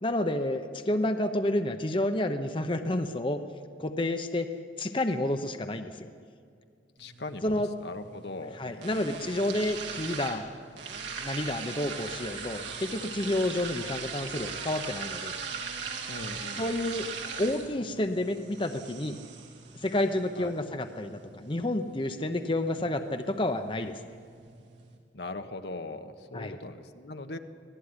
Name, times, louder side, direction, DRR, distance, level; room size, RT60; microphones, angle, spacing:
voice 1, 0.0-3.4 3.8-4.5 4.8-6.1 7.4-7.7 8.5-10.5 11.2-15.3 16.6-17.1 17.4-19.2 19.8-24.0 26.3-26.6, left 1 dB, 30° left, 7 dB, 0.9 m, -30 dB
voice 2, 7.0-9.1 16.1-16.8 17.2-17.3 20.4-20.5 25.1-27.4, left 2 dB, 70° left, 6 dB, 1.4 m, -40 dB
sound 1, 7.0-25.0, right 5 dB, 85° right, 3.4 m, -41 dB
25.0 x 18.0 x 9.9 m, 2.3 s
head